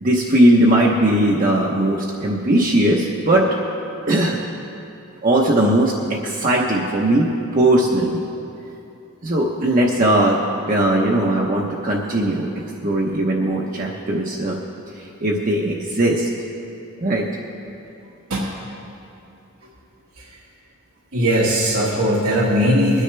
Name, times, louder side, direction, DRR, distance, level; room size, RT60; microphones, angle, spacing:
voice 1, 0.0-3.5 4.1-4.4 5.2-8.2 9.2-10.4 10.7-14.6 14.9-16.4 17.0-17.3, right 1 dB, 40° right, -2 dB, 0.9 m, -19 dB
voice 2, 21.1-23.0, equal, 80° right, -6 dB, 1.7 m, -19 dB
21.0 x 9.9 x 3.4 m, 2.8 s
head